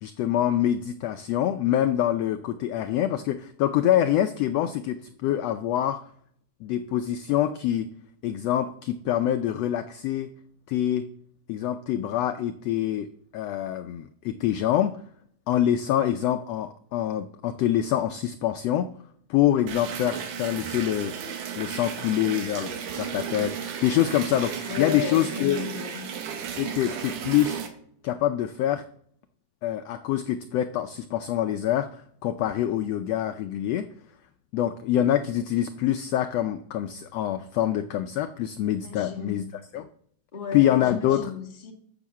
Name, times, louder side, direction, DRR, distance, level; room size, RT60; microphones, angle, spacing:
voice 1, 0.0-6.0 6.6-7.9 8.2-10.3 10.7-11.1 11.5-13.1 13.3-15.0 15.5-18.9 19.3-21.2 21.6-25.6 26.6-27.6 28.0-28.8 29.6-33.9 34.5-39.4 39.7-39.9 40.5-41.3, left 11 dB, 80° left, 1.4 m, -25 dB
sound 1, 19.7-27.7, right 7 dB, 80° right, 3.0 m, -34 dB
voice 2, 24.6-26.1 38.8-39.6 40.3-41.7, left 6 dB, 25° left, 1.2 m, -34 dB
12.0 x 6.6 x 7.3 m
omnidirectional pair, 3.6 m